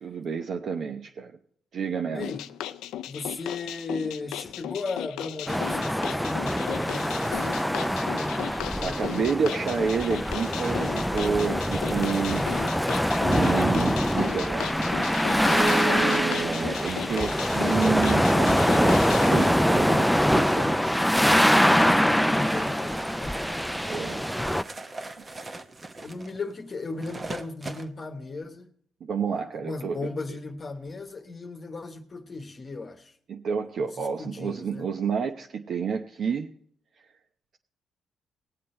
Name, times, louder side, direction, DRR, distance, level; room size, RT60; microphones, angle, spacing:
voice 1, 0.0-1.3 1.7-2.3 8.8-12.4 13.2-15.1 15.5-21.0 23.8-24.2 29.0-30.1 33.3-36.5, right 6 dB, 60° right, 0.8 m, -30 dB
voice 2, 2.1-2.4 3.1-9.0 13.3-13.7 21.9-23.4 26.0-28.7 29.6-33.1 33.8-34.9, left 3 dB, 35° left, 1.1 m, -36 dB
sound 1, 2.2-19.5, left 12 dB, 90° left, 0.4 m, -36 dB
sound 2, 5.5-24.6, equal, ahead, 0.4 m, -24 dB
sound 3, 20.5-27.9, right 2 dB, 25° right, 0.9 m, -41 dB
19.0 x 7.6 x 4.3 m
cardioid pair, 90°, 0 cm